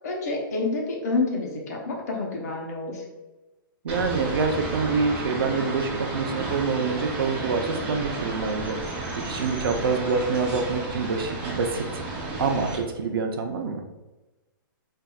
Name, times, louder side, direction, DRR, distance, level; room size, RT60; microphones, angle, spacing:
voice 1, 0.0-3.0, left 3 dB, 45° left, 0 dB, 0.8 m, -28 dB
voice 2, 3.8-12.0 12.4-13.8, right 4 dB, 90° right, 4 dB, 0.6 m, -26 dB
sound 1, 3.9-12.8, right 2 dB, 10° right, 0.5 m, -32 dB
4.4 x 2.6 x 2.3 m, 1.1 s
hypercardioid pair, 170°, 12 cm